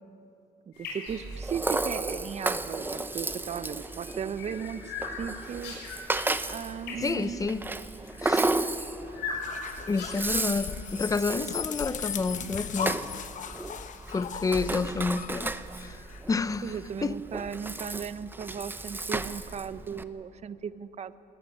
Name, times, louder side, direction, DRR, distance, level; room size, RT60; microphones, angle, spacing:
sound 1, 0.7-13.2, left 4 dB, 90° left, 6.8 m, -43 dB
voice 1, 0.7-5.9 6.5-7.5 14.8-15.2 16.6-21.1, right 7 dB, 40° right, 0.9 m, -37 dB
Rattle (instrument), 1.1-20.0, right 2 dB, 10° right, 0.8 m, -34 dB
voice 2, 7.0-7.7 8.2-8.5 9.9-13.0 14.1-15.5 15.8-16.0 16.3-17.2, left 4 dB, 20° left, 0.7 m, -29 dB
sound 2, 9.3-16.2, left 8 dB, 45° left, 1.1 m, -38 dB
19.5 x 19.0 x 9.9 m
cardioid pair, 110°, 17 cm